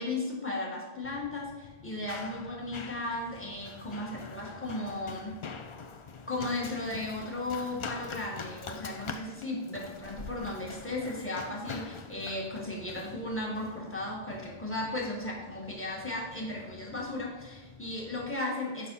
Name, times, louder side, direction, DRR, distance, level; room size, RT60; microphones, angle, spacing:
voice 1, 0.0-5.4 6.3-18.9, left 2 dB, 10° left, -3 dB, 1.5 m, -35 dB
Run, 1.0-18.3, left 5 dB, 50° left, 0.3 m, -45 dB
6.6 x 5.1 x 5.5 m, 1.2 s
omnidirectional pair, 1.1 m